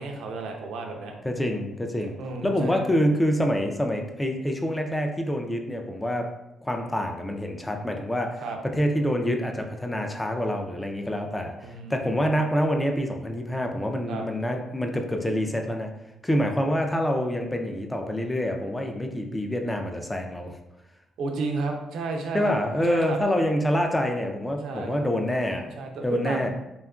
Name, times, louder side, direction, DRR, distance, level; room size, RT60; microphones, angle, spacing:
voice 1, 0.0-1.1 2.2-2.8 8.4-8.6 11.6-11.9 14.1-14.2 21.2-22.5 22.9-23.2 24.6-25.1 25.8-26.5, right 3 dB, 80° right, 2 dB, 0.4 m, -32 dB
voice 2, 1.2-2.2 2.4-6.3 6.6-15.9 16.2-20.6 22.3-25.7 26.0-26.5, equal, 10° left, 3 dB, 0.3 m, -26 dB
2.8 x 2.4 x 2.3 m, 0.90 s
cardioid pair, 90°, 0 cm